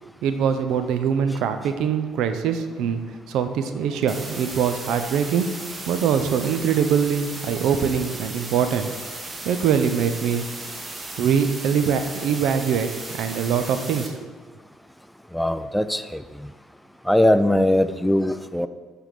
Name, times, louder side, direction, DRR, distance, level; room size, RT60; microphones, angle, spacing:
voice 1, 0.2-5.5 5.9-8.9 9.5-10.5 11.2-14.3, right 7 dB, 75° right, 9 dB, 0.5 m, -23 dB
sound 1, 4.1-14.1, right 2 dB, 30° right, 1.1 m, -36 dB
voice 2, 15.3-16.2 17.1-18.7, left 1 dB, 5° left, 11 dB, 0.3 m, -20 dB
7.0 x 3.4 x 5.9 m, 1.4 s
supercardioid pair, 65°, 0 cm